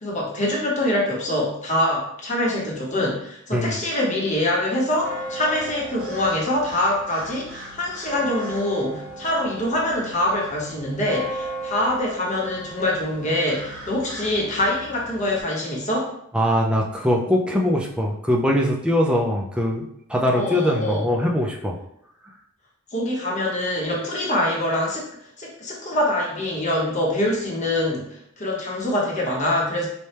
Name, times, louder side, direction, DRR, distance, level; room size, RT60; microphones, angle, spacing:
voice 1, 0.0-16.1 20.3-21.1 22.9-25.1 25.4-29.9, left 1 dB, 35° left, -2 dB, 0.9 m, -24 dB
sound 1, 5.0-15.4, right 1 dB, 55° right, 1.2 m, -36 dB
voice 2, 16.3-21.8, equal, 5° right, -1 dB, 0.4 m, -22 dB
4.1 x 2.2 x 3.3 m, 0.73 s
head